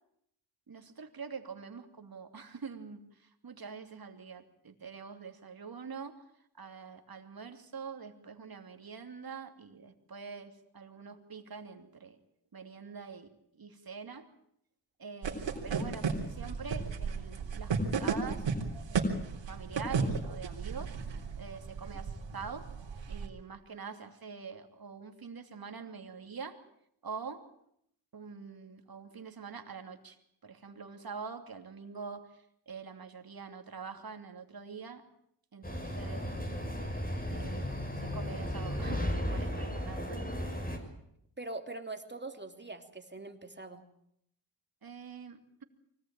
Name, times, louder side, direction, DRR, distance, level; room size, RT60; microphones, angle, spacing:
voice 1, 0.7-6.2 6.5-12.2 12.5-13.3 13.5-14.3 15.0-18.5 18.9-20.9 21.4-22.7 23.1-26.6 27.0-27.4 28.1-35.0 35.5-36.3 37.3-40.5 44.8-45.6, right 5 dB, 55° right, 6 dB, 3.0 m, -45 dB
sound 1, 15.2-23.3, right 4 dB, 80° right, 3.7 m, -34 dB
sound 2, 35.6-40.8, equal, 20° left, 6.3 m, -35 dB
voice 2, 41.4-43.9, right 2 dB, 25° right, 6 dB, 3.0 m, -43 dB
24.0 x 18.0 x 9.0 m, 0.74 s
cardioid pair, 60°, 43 cm